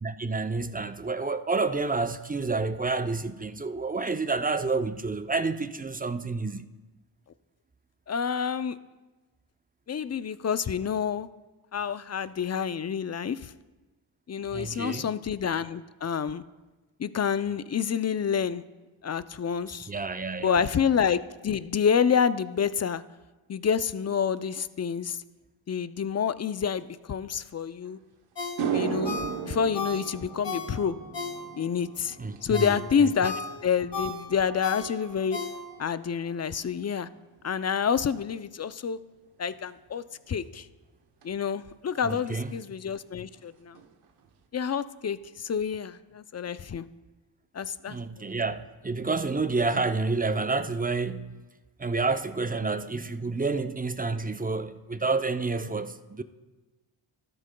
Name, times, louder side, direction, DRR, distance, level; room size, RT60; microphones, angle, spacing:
voice 1, 0.0-6.6 14.5-15.1 19.9-20.6 32.2-32.8 42.0-42.5 47.9-51.4 51.8-56.2, right 3 dB, 20° right, 0.6 m, -29 dB
voice 2, 8.1-8.8 9.9-11.3 11.7-13.5 14.3-16.4 17.0-18.6 19.0-19.9 20.4-23.0 23.5-25.2 25.7-28.0 28.7-31.0 31.5-33.4 33.6-35.4 35.8-37.1 37.4-39.0 39.4-40.7 41.2-43.8 44.5-46.8 47.5-48.0, left 7 dB, 35° left, 0.5 m, -28 dB
sound 1, 27.9-28.0 28.4-36.9 37.2-37.6 41.2-41.3 43.0-43.1 43.3-43.5 43.7-44.3, right 7 dB, 85° right, 1.1 m, -37 dB
Ringtone, 28.3-31.8 32.2-36.0 36.4-36.5, left 4 dB, 55° left, 2.5 m, -36 dB
14.0 x 12.5 x 2.3 m
cardioid pair, 55°, 50 cm